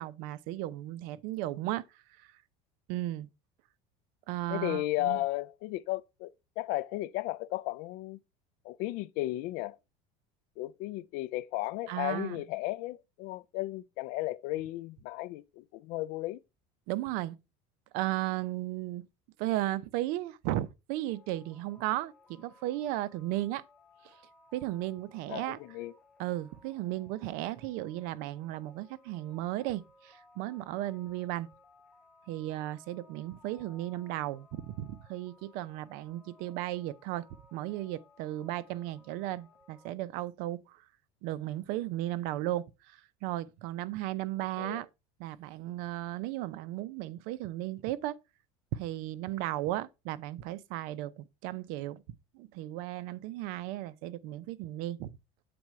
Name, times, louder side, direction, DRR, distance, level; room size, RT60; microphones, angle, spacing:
voice 1, 0.0-1.8 2.2-2.3 2.9-3.3 4.3-5.2 11.9-12.4 16.9-17.4 17.9-19.0 19.4-23.6 24.0-24.1 24.5-25.6 26.2-31.5 32.3-37.3 37.5-40.8 41.2-44.9 45.2-48.2 48.7-52.0 52.3-55.1, right 15 dB, 70° right, 0.6 m, -35 dB
voice 2, 4.5-8.2 8.6-9.8 10.6-16.4 25.3-25.9 44.6-44.8, left 17 dB, 65° left, 0.4 m, -35 dB
sound 1, 21.1-39.9, left 2 dB, 5° left, 1.2 m, -61 dB
7.8 x 4.2 x 4.6 m
supercardioid pair, 130°, 16 cm